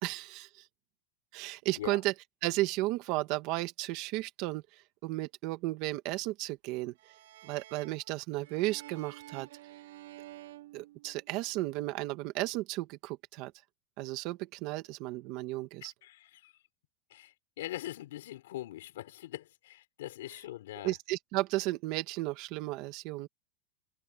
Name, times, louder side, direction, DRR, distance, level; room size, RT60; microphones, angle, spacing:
voice 1, 0.0-0.6 1.3-2.1 2.4-6.9 7.4-9.5 10.7-13.5 14.0-15.9 20.8-23.3, right 18 dB, 40° right, 1.7 m, -34 dB
sound 1, 7.0-11.6, right 16 dB, 80° right, 3.4 m, -51 dB
voice 2, 15.8-16.7 17.1-20.9, left 14 dB, 90° left, 5.1 m, -42 dB
supercardioid pair, 180°, 0 cm